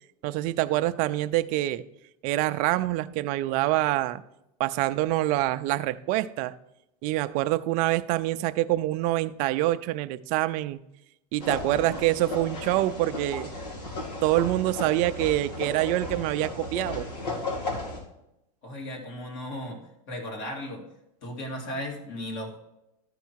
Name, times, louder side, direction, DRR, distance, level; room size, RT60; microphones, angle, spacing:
voice 1, 0.2-1.9 2.2-4.2 4.6-6.6 7.0-10.8 11.3-13.5 14.2-17.1, right 16 dB, 40° right, 0.4 m, -26 dB
sound 1, 11.4-18.0, left 2 dB, 85° left, 2.6 m, -35 dB
voice 2, 18.6-19.8 20.1-20.8 21.2-22.6, left 1 dB, 55° left, 2.5 m, -35 dB
12.5 x 4.6 x 4.6 m
supercardioid pair, 135°, 20 cm